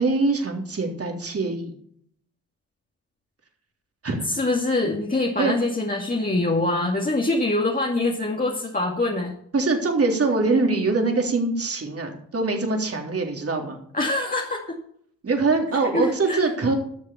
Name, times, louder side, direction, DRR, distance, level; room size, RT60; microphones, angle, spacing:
voice 1, 0.0-1.7 4.0-4.3 5.4-5.6 9.5-13.8 15.2-16.8, right 3 dB, 40° right, 2 dB, 3.6 m, -23 dB
voice 2, 4.3-9.3 13.9-14.8 15.9-16.4, left 2 dB, 25° left, -1 dB, 2.3 m, -24 dB
13.0 x 6.6 x 7.0 m, 0.65 s
hypercardioid pair, 50°, 36 cm